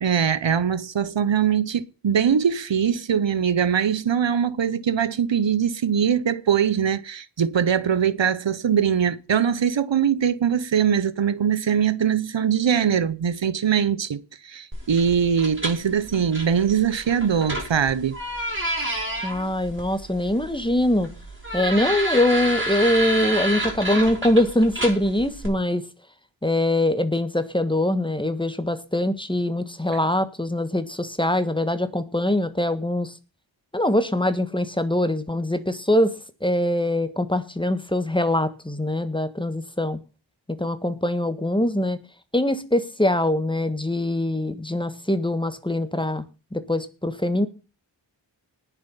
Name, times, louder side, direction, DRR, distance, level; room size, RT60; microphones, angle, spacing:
voice 1, 0.0-18.2, right 7 dB, 75° right, 1.0 m, -22 dB
sound 1, 14.7-25.5, right 1 dB, 25° right, 6.5 m, -30 dB
voice 2, 19.2-21.1 21.5-25.8 26.4-33.1 33.7-40.0 40.6-42.0 42.3-46.2 46.5-47.5, left 1 dB, 10° left, 1.6 m, -23 dB
19.0 x 7.3 x 5.6 m
wide cardioid pair, 55°, 45 cm